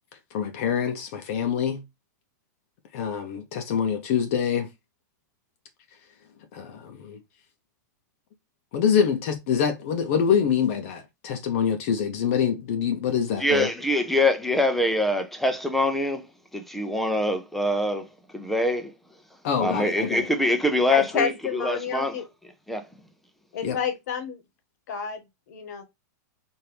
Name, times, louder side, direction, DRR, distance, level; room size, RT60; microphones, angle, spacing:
voice 1, 0.3-1.8 2.9-4.7 6.5-7.2 8.7-13.7 19.4-20.3 23.6-23.8, left 7 dB, 50° left, 0.7 m, -25 dB
voice 2, 13.4-16.3 16.5-18.1 18.3-18.9 19.6-22.2 22.7-22.8, left 1 dB, ahead, 0.5 m, -24 dB
voice 3, 20.9-22.2 23.5-24.4 24.9-25.2 25.5-25.8, left 6 dB, 70° left, 1.3 m, -29 dB
4.4 x 2.6 x 3.3 m
supercardioid pair, 160°, 10 cm